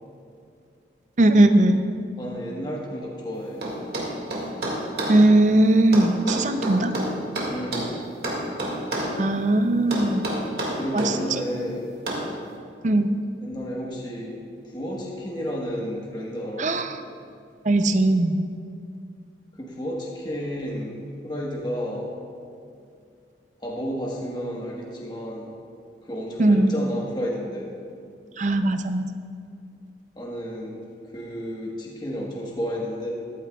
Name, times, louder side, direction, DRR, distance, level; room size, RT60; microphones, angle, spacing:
voice 1, 1.2-1.8 5.1-6.9 9.2-10.3 10.9-11.1 12.8-13.1 16.6-17.0 17.6-18.4 26.4-26.7 28.4-29.1, right 1 dB, 45° right, 9 dB, 0.5 m, -19 dB
voice 2, 2.2-3.7 7.5-7.9 10.7-11.9 13.4-16.7 19.6-22.1 23.6-25.5 26.0-27.7 30.2-30.9 31.1-33.1, equal, 25° left, -3 dB, 1.3 m, -32 dB
sound 1, 3.6-5.2 5.9-7.9 8.2-9.2 9.9-11.2 12.1-12.3, right 1 dB, 60° right, 2.0 m, -28 dB
14.5 x 12.0 x 2.4 m, 2.4 s
head